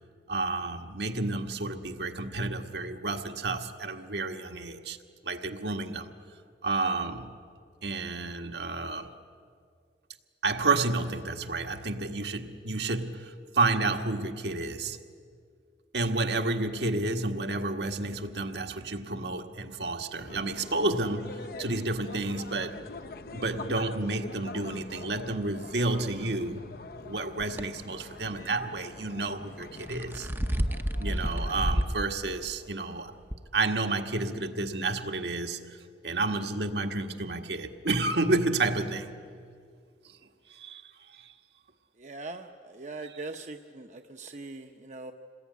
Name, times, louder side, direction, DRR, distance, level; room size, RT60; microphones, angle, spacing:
voice 1, 0.3-5.0 5.2-6.1 6.6-7.4 7.8-9.1 10.4-15.0 15.9-22.8 23.3-26.7 27.0-30.3 31.0-33.1 33.5-35.8 36.0-39.2 40.5-40.8 41.1-41.3, right 2 dB, 70° right, 5 dB, 1.6 m, -30 dB
sound 1, 20.2-32.0, left 3 dB, 55° left, 0.6 m, -45 dB
sound 2, 27.4-27.6 29.6-32.0 32.4-32.5 33.3-33.4, equal, 10° right, 0.7 m, -29 dB
voice 2, 42.0-45.1, right 3 dB, 40° right, 5 dB, 0.9 m, -41 dB
27.5 x 20.5 x 9.4 m, 2.2 s
head